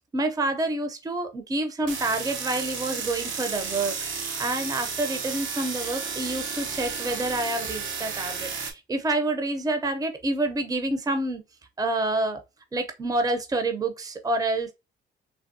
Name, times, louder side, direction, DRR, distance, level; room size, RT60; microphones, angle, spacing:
voice 1, 0.1-3.9 4.4-11.4 11.8-12.4 12.7-14.7, right 2 dB, 20° right, 0.6 m, -28 dB
sound 1, 1.9-8.7, right 5 dB, 75° right, 0.9 m, -32 dB
3.4 x 2.1 x 2.6 m
cardioid pair, 90°, 20 cm